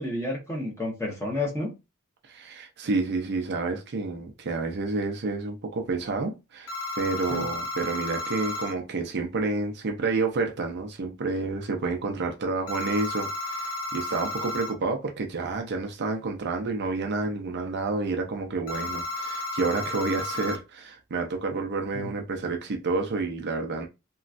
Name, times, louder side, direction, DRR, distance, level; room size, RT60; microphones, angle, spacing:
voice 1, 0.0-1.7 7.3-7.4 21.9-22.1, left 2 dB, 10° left, 1.0 m, -30 dB
voice 2, 2.2-23.9, right 3 dB, 50° right, 0.5 m, -29 dB
sound 1, 6.7-8.7 12.7-14.7 18.7-20.6, left 2 dB, 75° left, 0.6 m, -33 dB
3.0 x 2.3 x 2.5 m
head